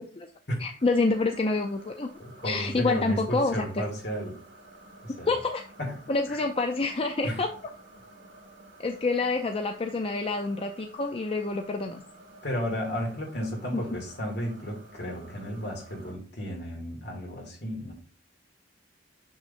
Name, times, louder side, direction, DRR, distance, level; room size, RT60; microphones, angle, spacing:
voice 1, 0.6-2.1 2.4-3.6 5.3-5.7 6.1-7.5 8.8-12.0, left 3 dB, 30° left, 5 dB, 0.5 m, -27 dB
sound 1, 0.8-16.1, right 2 dB, 85° right, 1.8 m, -52 dB
voice 2, 2.2-4.4 5.0-5.3 5.8-6.4 7.2-7.4 12.4-17.9, equal, 60° left, 1 dB, 2.4 m, -33 dB
6.3 x 6.2 x 2.6 m, 0.42 s
head